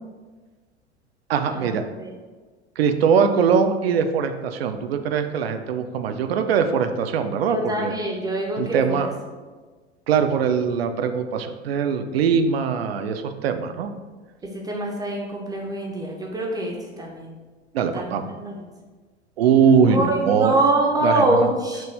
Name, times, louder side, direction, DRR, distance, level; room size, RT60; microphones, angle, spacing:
voice 1, 1.3-1.8 2.8-7.9 8.6-9.1 10.1-13.9 17.7-18.3 19.4-20.6 21.0-21.5, right 6 dB, 65° right, 8 dB, 0.5 m, -21 dB
voice 2, 7.5-9.1 14.5-17.3 17.9-18.7 19.8-21.9, right 2 dB, 10° right, -1 dB, 0.5 m, -24 dB
6.0 x 2.5 x 3.4 m, 1.4 s
figure-of-eight pair, 85°, 33 cm